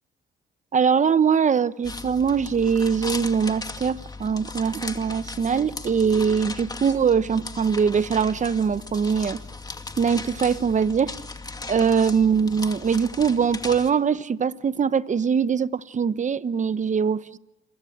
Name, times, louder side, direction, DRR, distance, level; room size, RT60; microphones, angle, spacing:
voice 1, 0.7-9.4 10.0-11.1 11.7-17.4, right 6 dB, 40° right, 1.0 m, -22 dB
sound 1, 1.8-13.9, left 3 dB, 20° left, 2.3 m, -37 dB
28.5 x 23.5 x 8.0 m
cardioid pair, 90°, 20 cm